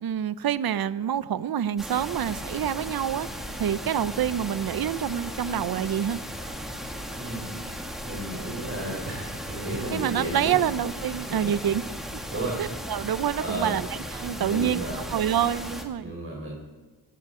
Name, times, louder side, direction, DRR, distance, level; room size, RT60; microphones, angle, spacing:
voice 1, 0.0-3.3 3.6-6.2 9.9-11.8 12.6-13.9 14.1-14.8 15.1-16.1, right 9 dB, 55° right, 16 dB, 0.6 m, -27 dB
sound 1, 1.8-15.8, equal, ahead, 2.1 m, -36 dB
voice 2, 7.2-7.5 7.8-10.6 11.3-11.5 12.3-12.6 13.4-13.8 14.4-15.1 16.0-16.6, right 2 dB, 30° right, -2 dB, 3.8 m, -33 dB
18.0 x 17.0 x 3.7 m, 1.3 s
wide cardioid pair, 90°, 43 cm